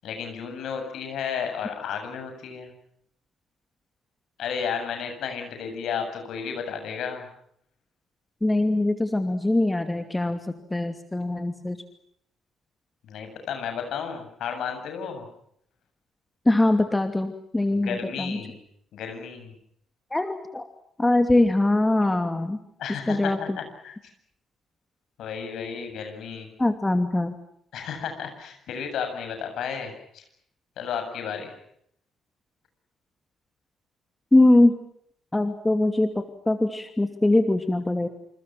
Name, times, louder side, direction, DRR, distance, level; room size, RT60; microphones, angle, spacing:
voice 1, 0.0-2.7 4.4-7.3 13.0-15.3 17.7-18.5 18.9-19.5 22.8-24.0 25.2-26.5 27.7-30.2 30.8-31.5, left 7 dB, 55° left, 6 dB, 7.8 m, -33 dB
voice 2, 8.4-10.4 10.7-11.8 16.5-18.4 20.1-20.7 21.0-22.6 23.1-23.6 26.6-27.3 34.3-34.7 35.3-38.1, left 2 dB, 15° left, 8 dB, 2.7 m, -22 dB
28.5 x 28.5 x 6.0 m, 0.72 s
figure-of-eight pair, 45°, 0 cm